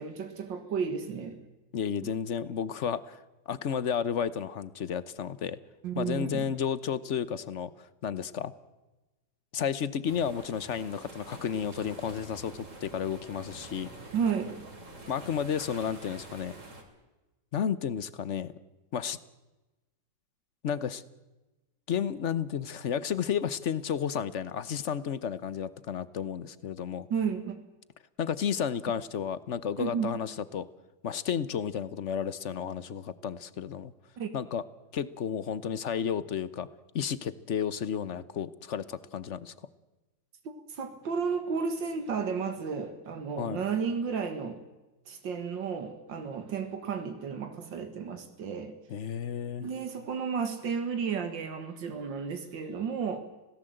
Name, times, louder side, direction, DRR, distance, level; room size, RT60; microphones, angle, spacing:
voice 1, 0.0-1.4 2.0-2.1 5.8-6.5 14.1-14.6 27.1-27.6 29.8-30.1 34.2-34.3 40.4-44.6 45.1-48.8 49.6-53.2, right 6 dB, 90° right, 7 dB, 2.3 m, -33 dB
voice 2, 1.7-3.2 3.5-5.6 6.0-8.5 9.5-13.9 15.1-16.5 17.5-18.5 18.9-19.2 20.6-21.0 21.9-27.1 28.2-30.7 31.0-33.9 34.3-34.6 34.9-36.7 36.9-39.5 43.4-43.6 48.9-49.7, left 8 dB, 50° left, 17 dB, 1.0 m, -32 dB
sound 1, 10.1-16.8, right 2 dB, 40° right, 3.4 m, -47 dB
26.5 x 17.5 x 7.8 m, 1.1 s
omnidirectional pair, 2.0 m